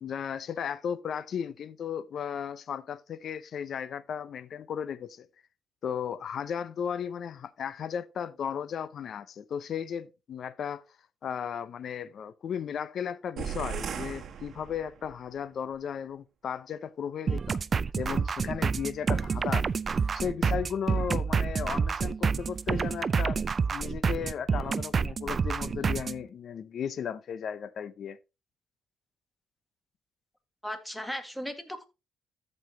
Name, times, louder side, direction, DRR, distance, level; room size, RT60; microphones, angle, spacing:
voice 1, 0.0-5.3 5.8-10.8 11.2-17.6 18.0-19.7 20.1-23.4 23.7-28.2, left 8 dB, 60° left, 0.6 m, -35 dB
sound 1, 13.4-15.2, right 7 dB, 60° right, 1.4 m, -37 dB
sound 2, 17.3-26.2, right 5 dB, 40° right, 0.4 m, -28 dB
voice 2, 30.6-31.9, equal, 5° left, 1.7 m, -36 dB
14.0 x 5.4 x 2.8 m
cardioid pair, 90°, 0 cm